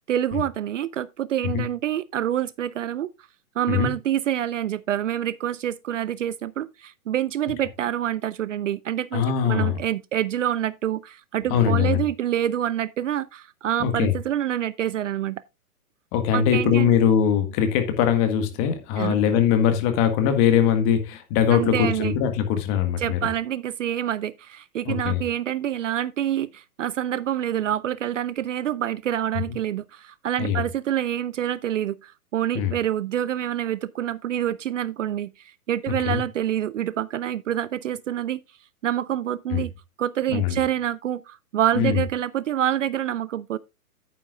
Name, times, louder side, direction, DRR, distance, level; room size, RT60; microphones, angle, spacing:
voice 1, 0.0-3.1 3.6-15.4 16.3-16.9 19.0-19.2 21.5-22.1 23.0-38.4 38.8-39.7 40.0-43.6, right 11 dB, 55° right, 0.5 m, -27 dB
voice 2, 9.1-9.8 11.5-12.0 13.8-14.1 16.1-23.2 24.8-25.2 30.4-30.6 32.5-32.7 35.9-36.2 39.5-39.6 40.3-40.6 41.7-42.0, left 8 dB, 25° left, 1.7 m, -21 dB
10.0 x 9.2 x 2.4 m
hypercardioid pair, 135°, 45 cm